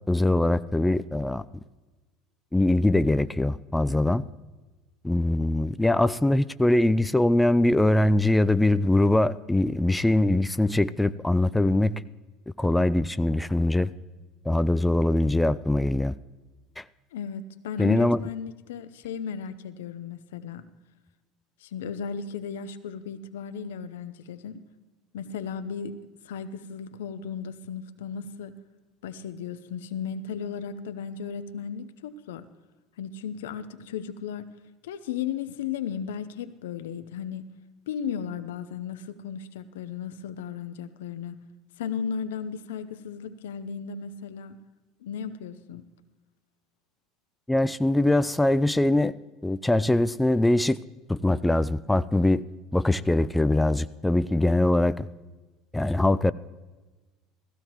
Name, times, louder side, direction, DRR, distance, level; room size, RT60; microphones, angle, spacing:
voice 1, 0.1-1.5 2.5-4.2 5.0-12.0 12.6-13.9 14.5-16.1 16.8-16.9 17.8-18.2 47.5-49.1 49.4-50.8 51.1-52.4 52.7-55.1 55.7-56.3, left 1 dB, 10° left, 14 dB, 0.4 m, -22 dB
voice 2, 17.1-20.7 21.6-24.6 25.1-26.0 26.2-28.5 29.0-32.4 33.0-34.5 34.8-37.4 37.9-41.4 41.8-44.6 45.0-45.8, left 7 dB, 85° left, 12 dB, 0.7 m, -35 dB
16.5 x 15.5 x 3.0 m, 1.2 s
hypercardioid pair, 80°, 0 cm